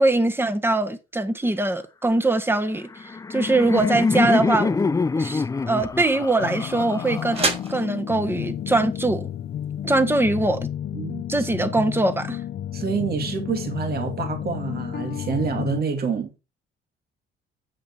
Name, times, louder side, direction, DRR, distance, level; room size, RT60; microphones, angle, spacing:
voice 1, 0.0-4.8 5.2-9.3 9.8-10.6 11.3-12.4, right 2 dB, 10° right, 1.6 m, -22 dB
Laughter, 2.8-7.8, left 4 dB, 15° left, 0.4 m, -25 dB
sound 1, 4.7-10.6, right 2 dB, 30° right, 4.6 m, -34 dB
sound 2, 6.4-15.8, left 10 dB, 55° left, 0.7 m, -32 dB
voice 2, 10.9-11.8 12.7-16.4, right 5 dB, 50° right, 2.2 m, -28 dB
9.7 x 8.2 x 4.6 m
cardioid pair, 95°, 20 cm